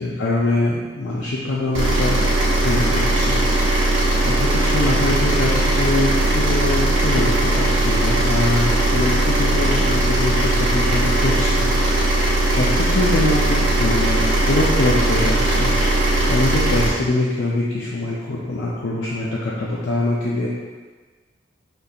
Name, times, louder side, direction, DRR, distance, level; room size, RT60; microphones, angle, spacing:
voice 1, 0.0-2.2 2.6-3.4 4.2-11.7 12.5-15.7 16.3-20.5, left 2 dB, 65° left, -5 dB, 0.5 m, -23 dB
sound 1, 1.7-16.9, right 1 dB, 75° right, 0.8 m, -19 dB
5.2 x 2.7 x 2.4 m, 1.4 s
head